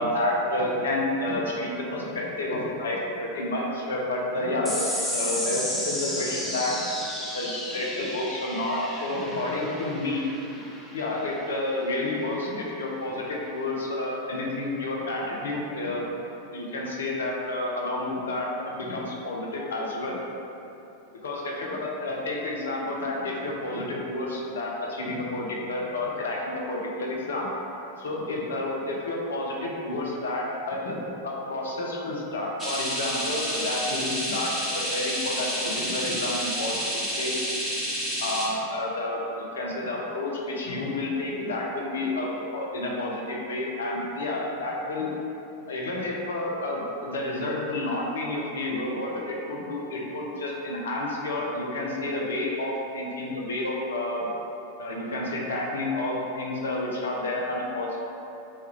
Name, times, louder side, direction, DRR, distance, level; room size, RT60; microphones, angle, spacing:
voice 1, 0.0-6.7 7.3-10.3 10.9-16.0 16.5-20.2 21.2-27.5 28.0-37.4 38.2-45.1 45.7-54.3 54.8-58.0, left 2 dB, 65° left, -2 dB, 0.5 m, -30 dB
sound 1, 4.7-11.4, left 1 dB, 5° left, 0.5 m, -33 dB
sound 2, 32.6-38.5, equal, 10° right, 1.0 m, -29 dB
3.1 x 2.2 x 3.1 m, 2.9 s
figure-of-eight pair, 90°, 0 cm